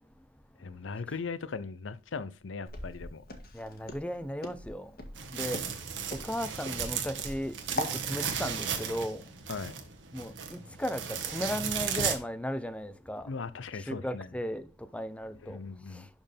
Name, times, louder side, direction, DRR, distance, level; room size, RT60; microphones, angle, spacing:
voice 1, 0.6-3.2 9.5-9.8 13.2-14.3 15.4-16.1, left 4 dB, 90° left, 0.6 m, -39 dB
Walk footsteps, 2.7-8.0, left 1 dB, 55° left, 1.7 m, -40 dB
voice 2, 3.5-4.9 5.3-5.6 6.1-9.2 10.1-13.3 13.8-15.6 15.9-16.1, equal, 5° left, 0.6 m, -36 dB
sound 1, 5.2-12.2, right 7 dB, 75° right, 1.6 m, -35 dB
11.5 x 4.4 x 3.4 m
head